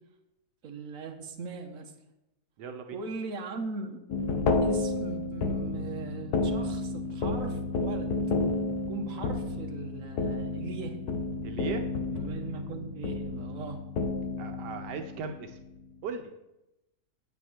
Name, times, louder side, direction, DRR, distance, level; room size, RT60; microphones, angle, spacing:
voice 1, 0.6-1.9 2.9-4.0 4.6-8.1 8.8-11.0 12.1-13.8, right 4 dB, 55° right, 4 dB, 1.5 m, -39 dB
voice 2, 2.6-3.0 11.4-11.8 14.4-15.6 16.0-16.3, right 6 dB, 80° right, 5 dB, 1.4 m, -38 dB
sound 1, 4.1-15.7, left 3 dB, 70° left, 1.4 m, -31 dB
8.5 x 5.9 x 7.3 m, 0.91 s
omnidirectional pair, 1.8 m